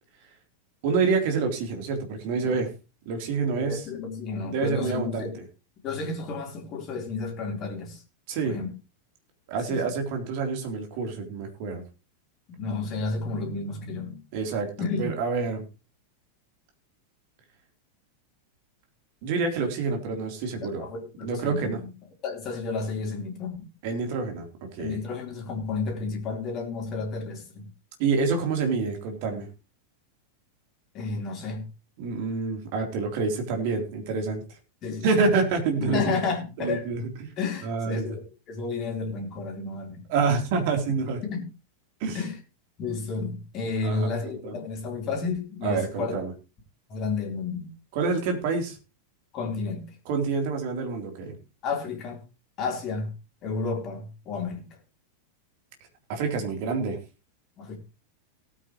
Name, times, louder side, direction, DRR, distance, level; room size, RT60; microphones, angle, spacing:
voice 1, 0.8-2.7 3.1-3.8 4.5-5.4 8.3-8.6 9.5-11.8 14.3-14.7 15.0-15.6 19.2-20.8 21.2-21.8 23.8-24.5 24.7-25.0 28.0-29.5 32.0-34.4 35.0-36.1 36.6-37.3 37.6-38.2 40.1-41.2 42.0-42.2 43.8-44.5 45.6-46.3 47.9-48.8 50.1-51.4 56.1-57.0, right 4 dB, 50° right, 3.6 m, -27 dB
voice 2, 3.6-5.4 5.8-8.0 8.4-8.7 9.7-9.8 12.5-14.2 14.8-15.1 20.8-21.9 22.2-23.7 24.8-27.7 30.9-31.6 34.8-35.1 35.8-36.9 37.4-40.0 41.2-41.5 42.1-42.4 42.8-46.2 46.9-47.7 49.3-49.9 51.6-52.2 52.6-53.1 53.4-54.7 57.6-57.8, left 4 dB, 35° left, 4.0 m, -31 dB
18.5 x 8.7 x 3.1 m
figure-of-eight pair, 90°, 0 cm